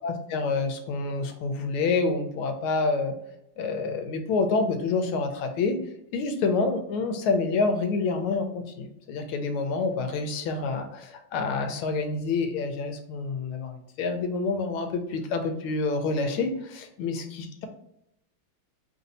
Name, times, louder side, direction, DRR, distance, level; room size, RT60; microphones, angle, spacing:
voice 1, 0.0-3.1 3.6-5.8 6.1-17.2, left 4 dB, 85° left, 6 dB, 1.5 m, -27 dB
3.5 x 2.6 x 3.9 m, 0.78 s
omnidirectional pair, 2.3 m